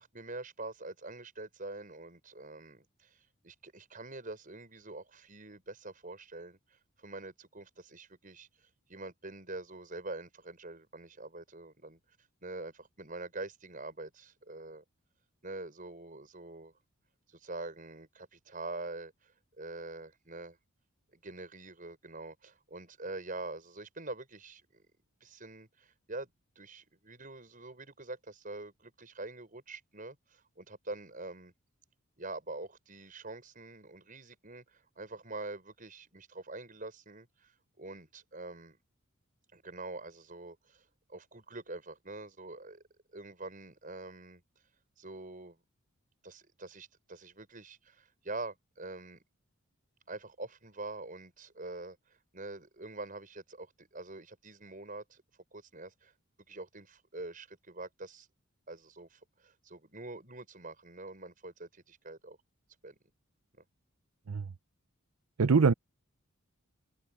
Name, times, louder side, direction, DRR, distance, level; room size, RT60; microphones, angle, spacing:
voice 1, 0.0-12.0 12.4-14.8 15.4-16.7 17.3-20.6 21.1-24.8 25.2-31.5 32.2-38.8 39.5-42.8 43.1-44.4 45.0-45.6 46.2-49.2 50.1-55.2 55.5-56.1 56.5-58.3 58.7-62.4 62.8-62.9, right 2 dB, 40° right, 6.5 m, -45 dB
voice 2, 65.4-65.7, right 5 dB, 85° right, 0.6 m, -23 dB
head